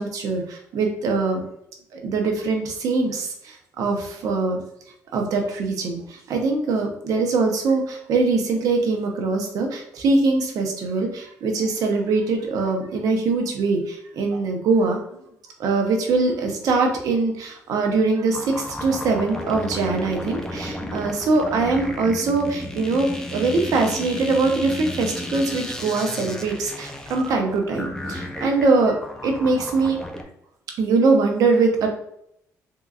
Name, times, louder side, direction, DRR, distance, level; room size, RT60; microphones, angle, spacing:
voice 1, 0.0-1.4 1.9-4.6 5.1-15.2 15.6-30.0 30.8-31.9, right 3 dB, 70° right, 2 dB, 0.8 m, -22 dB
sound 1, 18.3-30.2, left 1 dB, 10° left, 0.6 m, -33 dB
3.7 x 2.7 x 2.4 m, 0.74 s
cardioid pair, 85°, 6 cm